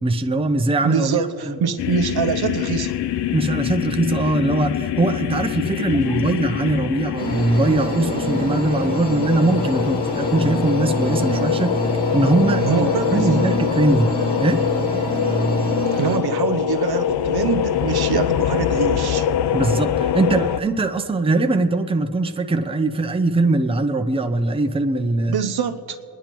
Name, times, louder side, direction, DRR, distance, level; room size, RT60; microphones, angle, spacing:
voice 1, 0.0-1.6 3.3-11.7 12.1-14.1 14.4-14.6 19.5-25.4, right 2 dB, 15° right, 7 dB, 0.6 m, -21 dB
voice 2, 0.8-3.0 6.1-6.2 12.6-13.4 16.0-19.3 25.3-26.0, right 6 dB, 60° right, 8 dB, 0.7 m, -24 dB
sound 1, 1.8-20.6, left 10 dB, 70° left, 0.5 m, -24 dB
sound 2, 7.2-16.2, equal, 40° left, 3.8 m, -25 dB
27.5 x 10.5 x 3.0 m, 2.7 s
cardioid pair, 75°, 42 cm